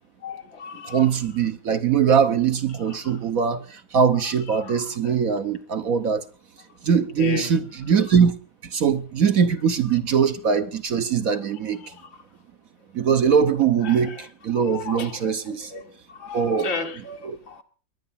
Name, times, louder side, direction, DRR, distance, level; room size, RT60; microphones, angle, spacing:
voice 1, 0.2-1.1 4.5-5.1 7.2-7.5 11.8-11.9 13.8-14.0 14.7-15.9 16.2-17.6, left 5 dB, 90° left, 2.7 m, -34 dB
voice 2, 0.9-6.2 6.8-8.4 8.6-11.8 12.9-15.7 16.3-16.7 17.2-17.4, right 7 dB, 55° right, 1.3 m, -21 dB
21.5 x 9.3 x 5.7 m
omnidirectional pair, 2.0 m